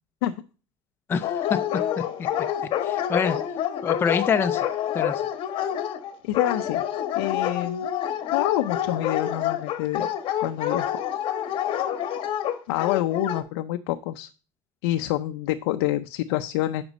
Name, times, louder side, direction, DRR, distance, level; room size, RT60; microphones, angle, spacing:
voice 1, 1.1-1.6 2.8-3.4 3.8-4.7 4.9-5.2, left 6 dB, 20° left, 8 dB, 0.5 m, -25 dB
Dog, 1.2-13.4, left 10 dB, 45° left, 1.0 m, -27 dB
voice 2, 6.2-6.8 7.2-7.9 8.3-10.1 10.4-11.0 11.5-11.6 12.7-14.3 14.8-16.8, left 14 dB, 80° left, 8 dB, 0.5 m, -27 dB
8.0 x 5.2 x 5.2 m, 0.37 s
cardioid pair, 145°, 13 cm